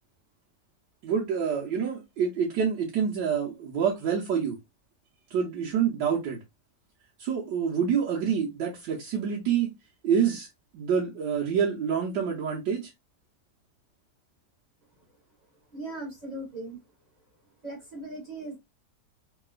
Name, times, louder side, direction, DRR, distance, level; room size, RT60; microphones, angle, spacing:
voice 1, 1.0-4.6 5.3-6.4 7.2-9.7 10.0-10.5 10.7-12.9, right 7 dB, 90° right, 1.4 m, -27 dB
voice 2, 15.7-16.8 17.6-18.6, right 1 dB, 25° right, 1.3 m, -38 dB
3.1 x 2.8 x 2.3 m
omnidirectional pair, 1.9 m